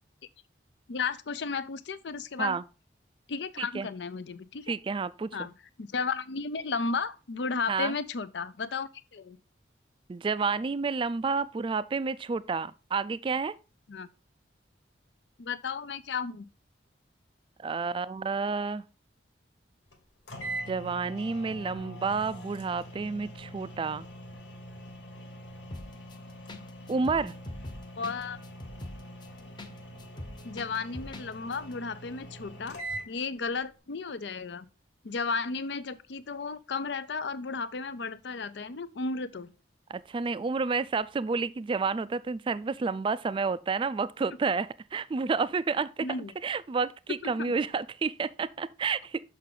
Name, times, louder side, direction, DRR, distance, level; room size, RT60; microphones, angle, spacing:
voice 1, 0.9-2.6 3.3-4.7 5.3-5.5 5.8-9.4 13.9-14.1 15.4-16.5 28.0-28.4 30.4-32.8 33.1-34.7 35.0-39.5 46.0-46.3 47.2-47.5, left 4 dB, 70° left, 0.5 m, -34 dB
voice 2, 3.6-3.9 4.7-5.3 7.7-7.9 10.1-13.5 17.6-18.8 20.7-24.1 26.9-27.3 39.9-46.1 46.4-49.2, right 4 dB, 30° right, 0.3 m, -30 dB
sound 1, 19.9-20.0 20.3-33.1, right 1 dB, 85° left, 1.6 m, -43 dB
sound 2, 25.7-26.1 26.5-26.6 26.9-29.7 30.0-31.3 31.5-31.6, left 1 dB, 25° left, 0.7 m, -41 dB
6.5 x 5.7 x 3.7 m
head